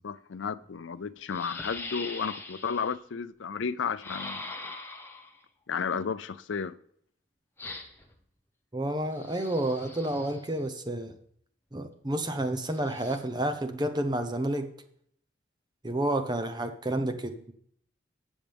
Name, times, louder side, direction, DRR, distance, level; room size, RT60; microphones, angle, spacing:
voice 1, 0.0-4.6 5.7-6.7, left 6 dB, 80° left, 0.5 m, -33 dB
sound 1, 0.6-0.7 1.3-3.0 4.0-5.4 7.6-8.1 9.1-10.5 12.7-13.2, left 3 dB, 10° left, 1.1 m, -42 dB
voice 2, 8.7-11.1 11.7-14.7 15.8-17.5, right 1 dB, 20° right, 0.9 m, -30 dB
21.0 x 7.2 x 3.5 m
head